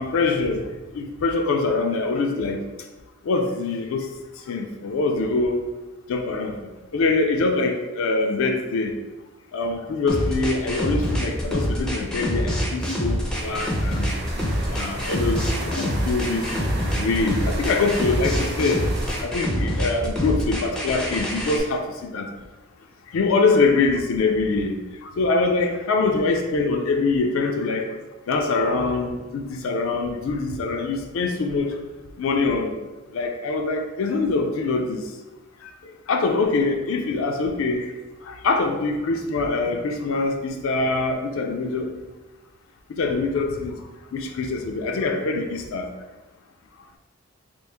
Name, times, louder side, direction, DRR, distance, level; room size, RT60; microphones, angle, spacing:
voice 1, 0.0-2.6 3.2-4.1 4.5-5.6 6.1-6.6 6.9-8.9 9.5-14.2 14.7-16.5 16.9-18.8 19.2-22.3 23.1-27.9 28.3-31.8 32.2-32.8 33.1-35.0 35.6-37.9 38.2-42.0 42.9-43.7 44.1-45.9, left 3 dB, 85° left, 3 dB, 0.4 m, -24 dB
sound 1, 10.1-21.6, equal, 5° left, 0.4 m, -25 dB
sound 2, 13.3-19.2, right 1 dB, 50° right, 0.4 m, -35 dB
3.0 x 2.4 x 3.4 m, 1.1 s
head